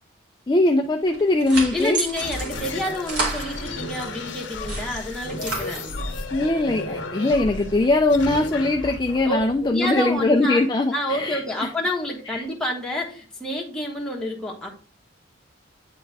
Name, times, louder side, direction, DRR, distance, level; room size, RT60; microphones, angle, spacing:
voice 1, 0.5-2.0 6.3-11.7 12.3-12.4, left 2 dB, 20° left, 2 dB, 0.4 m, -21 dB
sound 1, 1.1-4.1 4.5-6.2, right 2 dB, 65° right, 2.3 m, -31 dB
voice 2, 1.7-5.8 9.2-9.4 9.7-10.6 10.9-14.7, left 1 dB, 5° left, -2 dB, 1.2 m, -28 dB
sound 2, 2.2-10.4, left 3 dB, 70° left, 0.8 m, -34 dB
9.1 x 3.4 x 3.3 m, 0.41 s
head